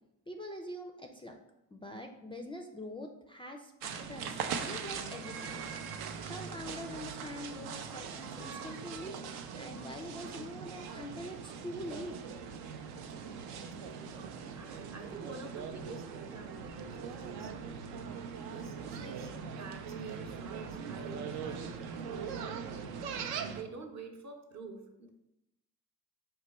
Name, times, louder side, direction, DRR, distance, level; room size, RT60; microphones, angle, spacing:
voice 1, 0.3-1.4 1.7-5.7 6.2-9.2 9.6-12.2, left 1 dB, 15° left, 3 dB, 0.3 m, -44 dB
sound 1, 3.8-23.6, right 6 dB, 70° right, 0.5 m, -41 dB
voice 2, 14.0-17.5 18.4-21.7 22.0-25.1, right 3 dB, 45° right, 4 dB, 0.8 m, -48 dB
4.2 x 2.2 x 4.1 m, 0.86 s
hypercardioid pair, 55°, 39 cm